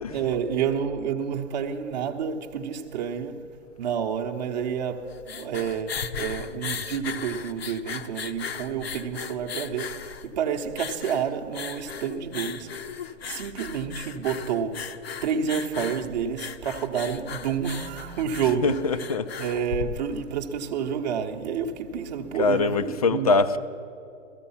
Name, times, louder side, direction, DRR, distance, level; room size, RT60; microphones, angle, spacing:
voice 1, 0.1-18.9 19.4-23.3, right 7 dB, 35° right, 0.9 m, -29 dB
sound 1, 5.0-20.4, left 6 dB, 50° left, 0.8 m, -37 dB
voice 2, 18.6-19.3 22.4-23.6, left 4 dB, 30° left, 0.4 m, -23 dB
17.0 x 14.0 x 5.7 m
hypercardioid pair, 150°, 38 cm